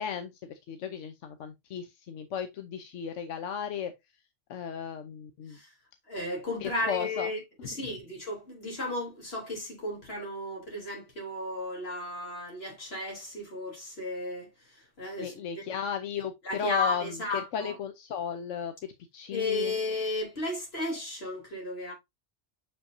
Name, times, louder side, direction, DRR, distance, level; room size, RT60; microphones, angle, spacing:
voice 1, 0.0-3.9 4.5-5.6 6.6-7.3 7.6-8.0 15.2-19.8, left 8 dB, 80° left, 1.1 m, -35 dB
voice 2, 6.1-14.5 15.0-15.3 15.7-15.8 16.4-17.8 19.3-21.9, left 2 dB, 55° left, 3.6 m, -34 dB
6.6 x 5.5 x 2.6 m
omnidirectional pair, 1.3 m